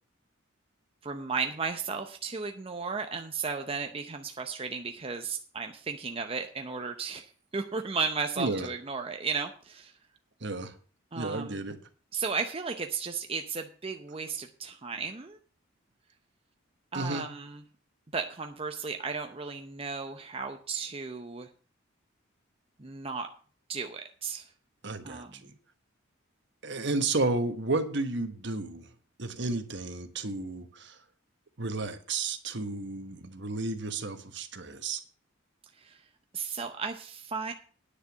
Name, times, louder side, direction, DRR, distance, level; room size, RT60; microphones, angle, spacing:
voice 1, 1.0-9.9 11.1-11.6 12.1-15.4 16.9-17.6 18.1-21.5 22.8-23.3 23.7-24.5 25.0-25.3 35.8-36.0 36.3-37.5, right 5 dB, 30° right, 5 dB, 0.7 m, -34 dB
voice 2, 8.4-8.7 10.4-10.7 11.1-11.8 16.9-17.3 24.8-25.5 26.6-28.9 29.2-31.0 31.6-35.0, right 3 dB, 60° right, 8 dB, 1.4 m, -32 dB
9.8 x 6.7 x 7.2 m, 0.41 s
head